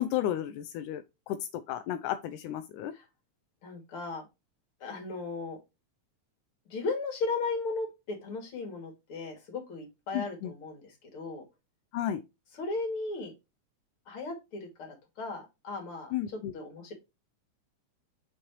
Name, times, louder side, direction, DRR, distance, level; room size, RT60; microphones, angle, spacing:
voice 1, 0.0-2.9 10.1-10.5 11.9-12.2 16.1-16.5, left 11 dB, 85° left, 2.1 m, -33 dB
voice 2, 3.6-4.2 4.8-5.6 6.7-11.4 12.6-13.3 14.1-16.9, left 3 dB, 45° left, 3.2 m, -36 dB
6.3 x 6.1 x 3.0 m
omnidirectional pair, 3.5 m